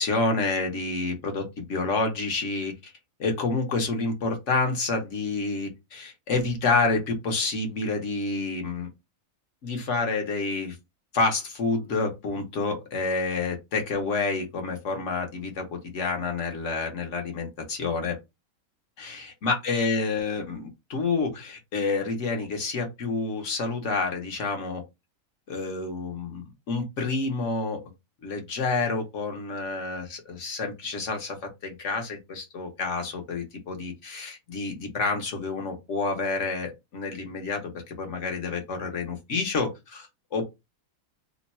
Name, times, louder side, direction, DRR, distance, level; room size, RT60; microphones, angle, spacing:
voice 1, 0.0-2.9 3.2-8.9 9.6-10.8 11.1-18.2 19.0-24.8 25.5-27.8 28.2-40.6, left 3 dB, 60° left, 1.1 m, -28 dB
3.0 x 2.2 x 4.1 m
omnidirectional pair, 1.6 m